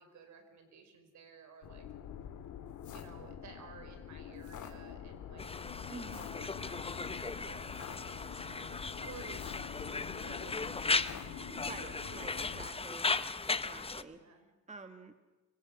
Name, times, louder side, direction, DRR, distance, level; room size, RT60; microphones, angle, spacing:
voice 1, 0.0-1.9 2.9-5.7 6.0-9.5 9.8-12.9 14.0-14.5, right 5 dB, 70° right, 7 dB, 4.9 m, -55 dB
sound 1, 1.6-12.7, left 9 dB, 75° left, 2.2 m, -46 dB
Conversation, 5.4-14.0, left 4 dB, 20° left, 0.9 m, -37 dB
voice 2, 5.9-6.2 11.7-13.1 13.4-14.2 14.7-15.1, right 3 dB, 25° right, 8 dB, 1.6 m, -48 dB
25.0 x 24.0 x 6.4 m, 1.2 s
cardioid pair, 90°, 30 cm